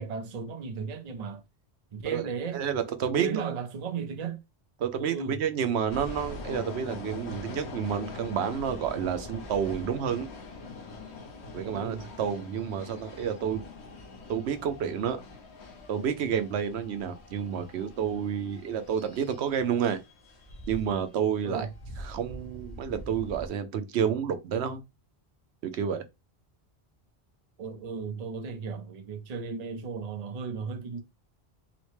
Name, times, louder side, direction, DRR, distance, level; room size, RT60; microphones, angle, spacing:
voice 1, 0.0-1.4 1.9-2.6 3.2-4.4 5.0-5.4 11.6-12.1 21.4-21.7 27.6-31.0, right 5 dB, 45° right, 0.6 m, -35 dB
voice 2, 2.5-3.5 4.8-10.3 11.5-13.6 14.3-15.2 15.9-20.0 20.7-21.7 22.0-24.8 25.6-26.0, right 8 dB, 80° right, 0.9 m, -30 dB
sound 1, 5.9-23.5, left 2 dB, 85° left, 1.1 m, -44 dB
4.0 x 2.1 x 3.1 m
omnidirectional pair, 1.1 m